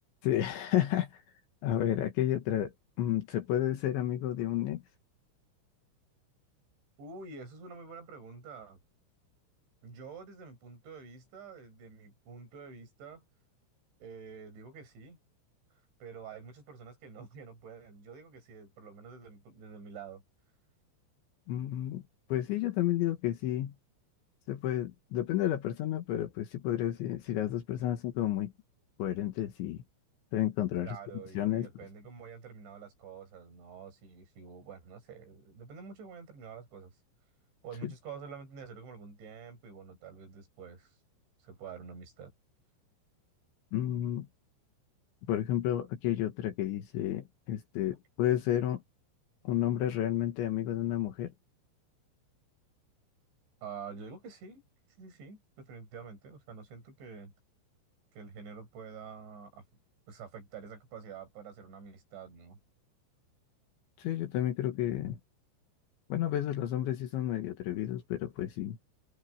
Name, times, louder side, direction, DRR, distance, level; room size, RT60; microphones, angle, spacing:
voice 1, 0.2-1.1 1.6-2.7 3.0-4.8 21.5-22.0 22.3-23.7 24.5-28.5 29.0-29.8 30.3-31.0 31.4-31.7 37.8-37.9 43.7-44.3 45.3-48.8 49.5-51.3 64.0-65.2 66.1-68.8, left 12 dB, 70° left, 3.6 m, -31 dB
voice 2, 7.0-8.8 9.8-13.2 14.0-15.2 16.0-20.2 30.8-36.9 37.6-41.0 41.4-42.3 53.6-54.6 55.0-57.3 58.1-59.6 60.1-62.6, right 5 dB, 60° right, 8.3 m, -47 dB
omnidirectional pair, 5.9 m